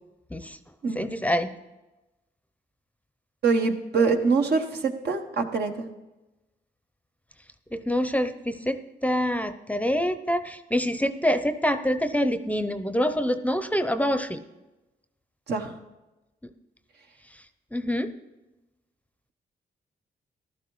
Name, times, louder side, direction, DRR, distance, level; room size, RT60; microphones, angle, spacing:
voice 1, 1.0-1.5 7.7-14.4 17.7-18.1, equal, 10° left, 10 dB, 0.6 m, -26 dB
voice 2, 3.4-5.9 15.5-15.7, right 4 dB, 70° right, 4 dB, 1.1 m, -24 dB
15.0 x 11.5 x 3.1 m, 1.0 s
supercardioid pair, 55°, 18 cm